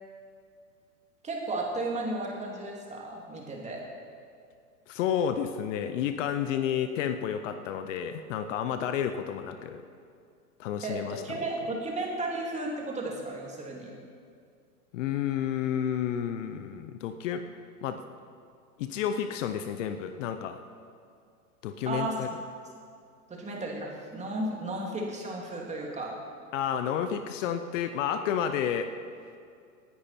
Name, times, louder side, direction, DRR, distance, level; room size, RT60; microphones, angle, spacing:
voice 1, 1.2-3.8 10.8-13.9 21.9-22.2 23.3-26.2, right 2 dB, 15° right, -1 dB, 2.6 m, -34 dB
voice 2, 4.9-9.8 10.6-11.4 14.9-17.4 17.8-18.0 18.8-20.6 21.6-22.3 26.5-28.9, left 9 dB, 55° left, 9 dB, 0.8 m, -31 dB
18.5 x 10.5 x 4.4 m, 2.3 s
hypercardioid pair, 115°, 45 cm